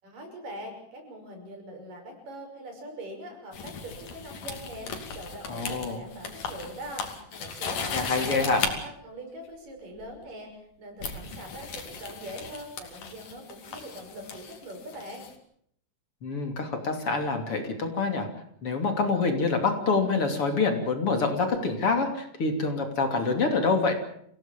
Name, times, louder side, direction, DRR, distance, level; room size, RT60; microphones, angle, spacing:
voice 1, 0.0-15.3, right 1 dB, 85° right, 3 dB, 7.6 m, -42 dB
sound 1, 3.5-8.7 10.0-10.2 11.0-15.3, left 5 dB, 80° left, 4.4 m, -37 dB
voice 2, 5.5-6.0 7.9-8.6 16.2-18.3 18.6-23.9, left 4 dB, 45° left, 5 dB, 3.7 m, -26 dB
27.0 x 17.5 x 7.4 m, 0.68 s
omnidirectional pair, 3.7 m